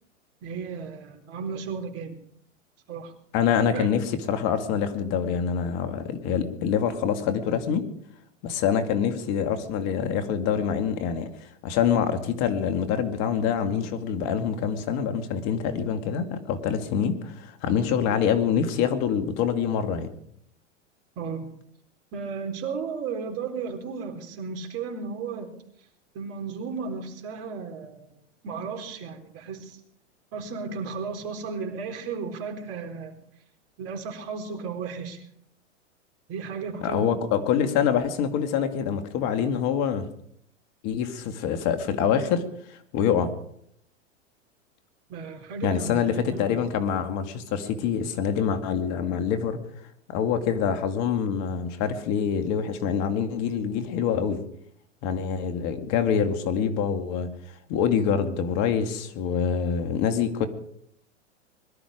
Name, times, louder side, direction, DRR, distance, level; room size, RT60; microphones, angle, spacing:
voice 1, 0.4-2.2 2.9-3.1 3.7-3.9 21.2-21.5 22.1-25.5 26.1-28.1 28.4-29.8 30.3-33.2 33.8-35.2 36.3-37.1 45.1-46.6, right 5 dB, 40° right, 3 dB, 4.1 m, -34 dB
voice 2, 3.3-7.9 8.4-20.1 36.8-40.1 40.8-42.4 42.7-43.3 45.6-49.6 50.1-54.4 55.0-57.3 57.7-60.5, left 7 dB, 45° left, 8 dB, 2.4 m, -25 dB
21.5 x 13.0 x 5.1 m, 0.68 s
hypercardioid pair, 110°, 36 cm